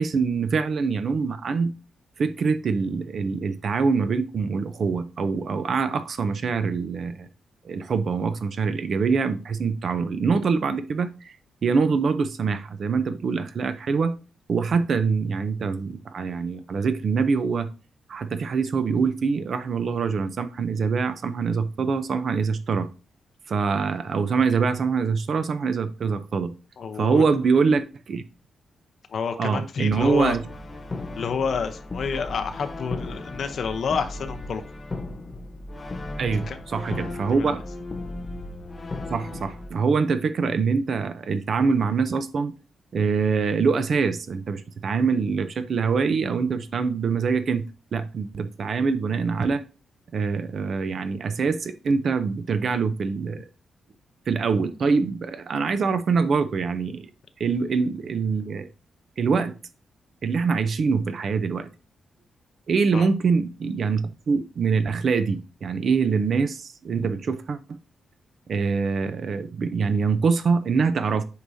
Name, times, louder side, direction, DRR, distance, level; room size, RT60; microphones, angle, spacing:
voice 1, 0.0-1.7 2.2-7.3 7.6-11.3 11.6-14.1 14.5-17.7 18.1-22.9 23.5-26.5 27.0-28.2 29.4-30.4 36.2-37.6 39.1-42.5 42.9-47.6 47.9-49.6 50.1-53.5 54.3-57.1 57.4-58.7 59.2-59.5 60.2-61.7 62.7-67.8 68.5-71.2, right 5 dB, 50° right, 0.6 m, -24 dB
voice 2, 26.8-27.2 29.1-30.4 31.1-34.6 36.3-36.6 36.9-37.5 62.9-63.1, left 6 dB, 55° left, 0.7 m, -29 dB
Brass instrument, 29.9-39.7, left 2 dB, 25° left, 0.9 m, -36 dB
8.2 x 4.8 x 2.7 m
wide cardioid pair, 140°, 0 cm